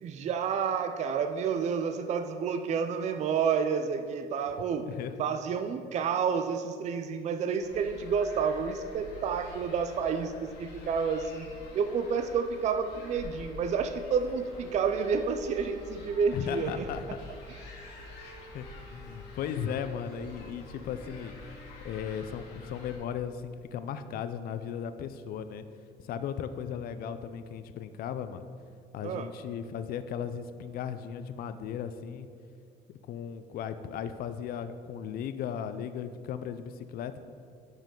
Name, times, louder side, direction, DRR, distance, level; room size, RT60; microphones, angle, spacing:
voice 1, 0.0-4.9 5.2-11.5 11.7-16.8 29.0-29.3, right 6 dB, 45° right, 8 dB, 0.4 m, -30 dB
voice 2, 4.8-5.2 16.3-17.2 18.5-21.4 21.8-25.6 26.0-28.5 28.9-32.3 33.1-37.2, left 8 dB, 60° left, 11 dB, 0.4 m, -36 dB
sound 1, 7.6-23.0, left 1 dB, 85° left, 1.5 m, -48 dB
sound 2, 11.3-17.1 17.8-23.4, right 1 dB, 15° left, 1.2 m, -53 dB
9.2 x 5.2 x 3.8 m, 2.3 s
cardioid pair, 110°, 17 cm